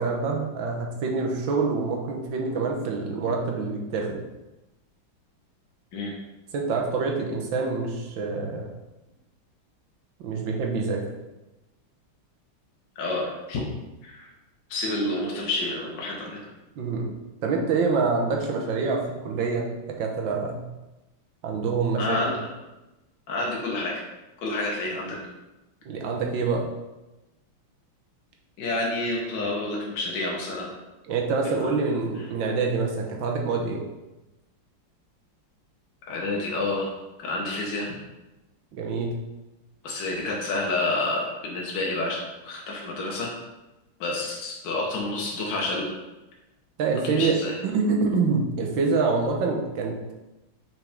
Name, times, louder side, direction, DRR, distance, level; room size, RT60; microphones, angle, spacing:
voice 1, 0.0-4.2 6.5-8.7 10.2-11.0 16.8-17.1 17.4-20.6 21.4-22.4 25.9-26.7 31.1-33.8 38.7-39.1 46.8-47.3 47.6-50.1, right 4 dB, 70° right, 1 dB, 1.6 m, -26 dB
voice 2, 13.0-13.6 14.0-14.3 14.7-16.4 22.0-22.5 23.3-24.0 24.4-25.2 28.6-30.7 31.6-31.7 36.1-36.9 37.2-37.9 39.8-43.3 44.0-46.0 47.1-47.5, left 2 dB, 65° left, -2 dB, 1.7 m, -29 dB
6.0 x 5.3 x 3.5 m, 1.0 s
omnidirectional pair, 2.3 m